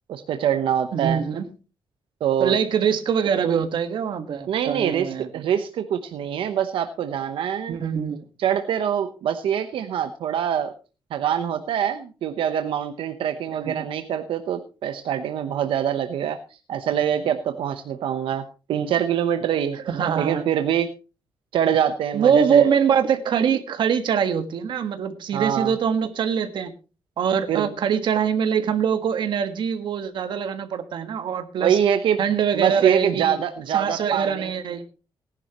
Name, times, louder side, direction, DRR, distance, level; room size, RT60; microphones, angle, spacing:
voice 1, 0.1-1.2 2.2-2.6 4.5-7.8 8.4-10.7 11.1-16.4 16.7-19.8 20.2-20.9 21.5-22.7 25.3-25.7 27.5-27.7 31.6-32.2 32.5-34.5, right 9 dB, 90° right, 8 dB, 0.9 m, -24 dB
voice 2, 0.9-1.4 2.4-5.3 7.7-8.2 13.5-13.8 19.9-20.5 22.1-26.7 27.2-31.8 32.2-33.4 33.7-34.8, right 7 dB, 65° right, 8 dB, 1.5 m, -23 dB
18.5 x 11.0 x 3.0 m, 0.32 s
wide cardioid pair, 160°, 9 cm